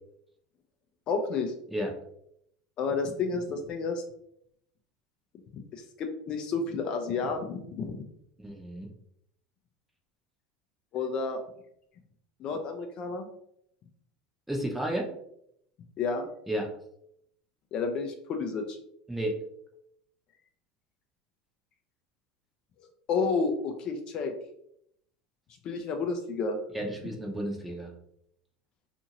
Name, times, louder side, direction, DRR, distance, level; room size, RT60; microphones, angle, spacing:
voice 1, 1.1-1.5 2.8-4.0 5.5-8.0 10.9-11.4 12.4-13.3 16.0-16.3 17.7-18.8 23.1-24.3 25.6-26.6, left 4 dB, 50° left, 5 dB, 0.5 m, -30 dB
voice 2, 8.4-8.9 14.5-15.1 16.5-16.7 19.1-19.4 26.7-27.9, right 1 dB, 5° right, 1 dB, 0.7 m, -32 dB
2.7 x 2.5 x 2.9 m, 0.72 s
supercardioid pair, 95°, 2 cm